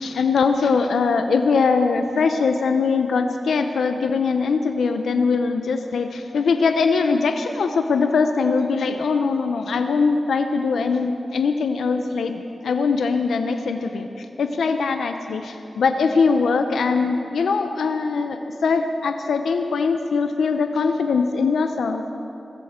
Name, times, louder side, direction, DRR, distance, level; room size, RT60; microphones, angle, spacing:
voice 1, 0.0-22.0, left 4 dB, 90° left, 6 dB, 0.7 m, -21 dB
21.0 x 15.5 x 4.4 m, 2.8 s
cardioid pair, 50°, 0 cm